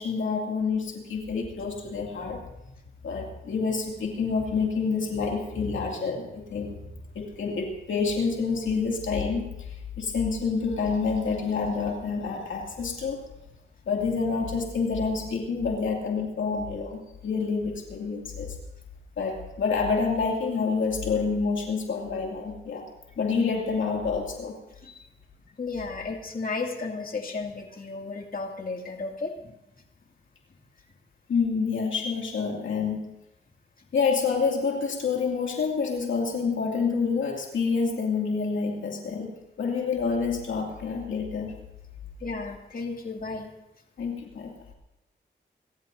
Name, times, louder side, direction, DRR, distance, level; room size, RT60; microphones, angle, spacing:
voice 1, 0.0-2.4 3.0-6.8 7.1-13.2 13.9-18.5 19.2-22.8 23.2-24.5 31.3-33.1 33.9-39.3 39.6-41.5 42.3-42.4 44.0-44.5, left 5 dB, 85° left, 0 dB, 2.4 m, -28 dB
voice 2, 25.6-29.5 42.2-43.5, left 3 dB, 50° left, 1 dB, 2.5 m, -34 dB
27.5 x 14.5 x 2.7 m, 0.91 s
cardioid pair, 55°, 19 cm